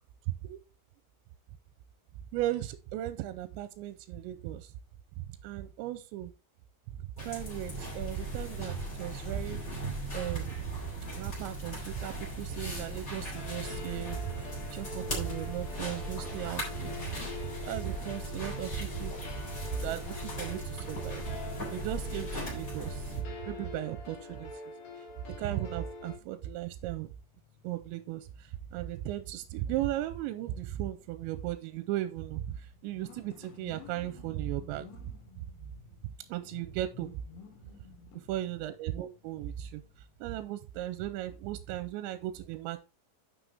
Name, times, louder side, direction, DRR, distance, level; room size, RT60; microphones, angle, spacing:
voice 1, 0.3-0.6 2.3-4.7 5.4-6.3 7.2-9.6 10.1-10.6 11.1-17.0 17.2-19.1 19.7-21.4 21.7-24.5 25.4-27.1 27.6-34.9 36.3-37.2 38.3-39.8 40.2-42.8, right 13 dB, 80° right, 12 dB, 2.8 m, -36 dB
sound 1, 7.2-23.2, right 1 dB, 20° left, 3.6 m, -38 dB
sound 2, 13.3-26.2, left 4 dB, 55° left, 3.9 m, -45 dB
sound 3, 27.1-40.4, left 8 dB, 85° left, 3.8 m, -56 dB
10.0 x 6.1 x 3.4 m, 0.29 s
omnidirectional pair, 5.5 m